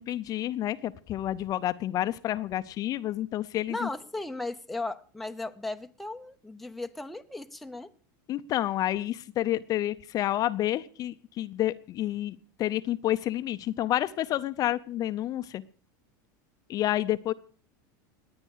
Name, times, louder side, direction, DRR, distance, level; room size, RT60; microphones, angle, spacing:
voice 1, 0.0-3.9 8.3-15.6 16.7-17.3, left 13 dB, 35° left, 0.7 m, -29 dB
voice 2, 3.7-7.9, left 2 dB, ahead, 0.8 m, -36 dB
19.0 x 9.7 x 6.5 m
supercardioid pair, 135°, 10 cm